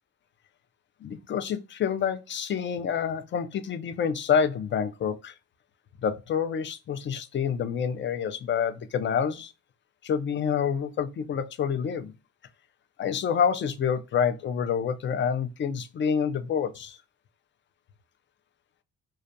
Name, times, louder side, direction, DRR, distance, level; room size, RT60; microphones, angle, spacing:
voice 1, 1.0-5.3 6.0-9.5 10.0-12.1 13.0-17.0, left 7 dB, 40° left, 0.4 m, -27 dB
2.3 x 2.1 x 2.6 m
cardioid pair, 90°, 30 cm